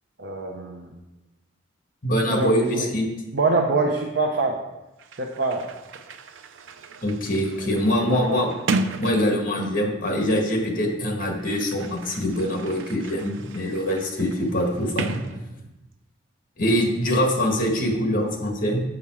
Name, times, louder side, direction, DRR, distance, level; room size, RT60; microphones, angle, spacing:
voice 1, 0.2-1.0 2.3-2.9 3.3-4.6 5.2-5.7 8.1-8.4, right 3 dB, 60° right, 0 dB, 0.8 m, -25 dB
voice 2, 2.0-3.1 7.0-8.5 9.0-15.2 16.6-18.8, equal, 45° left, 1 dB, 1.7 m, -24 dB
Sliding door, 4.7-4.8 5.0-10.0 11.0-15.9, right 3 dB, 85° right, 0.5 m, -34 dB
7.1 x 6.5 x 4.8 m, 0.99 s
head